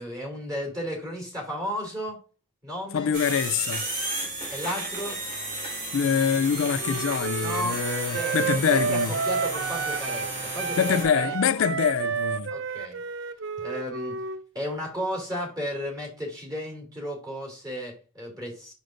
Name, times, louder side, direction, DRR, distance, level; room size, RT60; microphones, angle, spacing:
voice 1, 0.0-2.2 2.6-3.1 4.5-5.2 7.4-7.8 8.1-11.4 12.5-13.0 13.6-14.2 14.5-18.7, equal, 20° right, 3.0 m, -34 dB
voice 2, 2.9-3.9 5.9-9.1 10.8-12.5, left 7 dB, 85° left, 0.4 m, -25 dB
sound 1, 3.1-11.0, right 2 dB, 45° right, 4.1 m, -33 dB
Wind instrument woodwind instrument, 6.8-10.3 10.6-14.4, right 5 dB, 70° right, 0.6 m, -30 dB
7.8 x 6.4 x 2.6 m
head